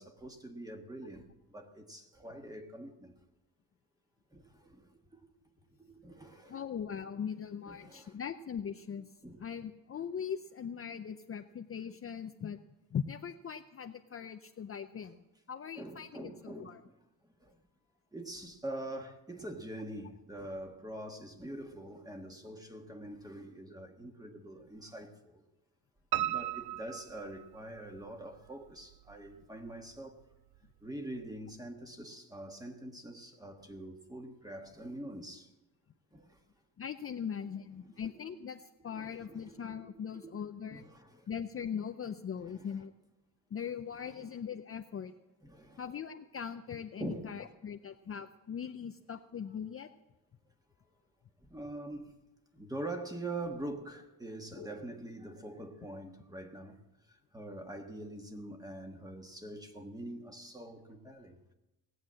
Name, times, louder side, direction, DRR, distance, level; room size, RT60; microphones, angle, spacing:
voice 1, 0.0-3.1 4.3-5.2 5.8-6.6 7.7-8.2 9.2-9.4 15.8-17.0 17.4-17.6 18.1-25.4 26.1-30.2 30.8-35.5 36.1-36.4 37.9-38.0 38.9-39.6 40.7-41.3 42.4-42.8 44.0-44.3 45.4-45.8 47.0-47.5 51.4-52.1 52.5-61.5, right 1 dB, 10° right, 1.5 m, -44 dB
voice 2, 6.5-9.1 9.4-12.6 12.9-16.8 36.8-40.9 41.3-42.9 43.5-45.1 45.8-49.9 54.6-54.7, left 7 dB, 35° left, 0.5 m, -40 dB
Piano, 26.1-28.0 28.5-29.3 29.7-29.8 30.2-30.3 30.6-30.7, right 14 dB, 90° right, 0.5 m, -36 dB
18.0 x 8.0 x 7.5 m
cardioid pair, 120°, 37 cm